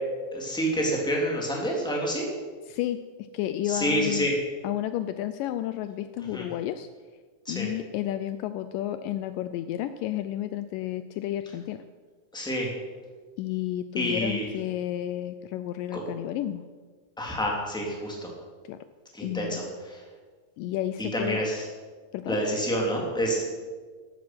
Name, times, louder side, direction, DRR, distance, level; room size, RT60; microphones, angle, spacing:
voice 1, 0.3-2.3 3.6-4.3 6.3-6.4 7.4-7.7 12.3-12.7 13.9-14.4 15.9-16.0 17.2-18.3 19.1-20.0 21.1-21.7 22.3-23.4, equal, ahead, -1 dB, 2.6 m, -28 dB
voice 2, 2.7-4.3 4.6-6.9 7.5-11.8 13.4-16.6 18.7-18.8 19.2-19.6 20.6-21.4 22.1-22.4, left 12 dB, 80° left, 11 dB, 2.1 m, -31 dB
14.0 x 12.5 x 6.1 m, 1.5 s
omnidirectional pair, 4.1 m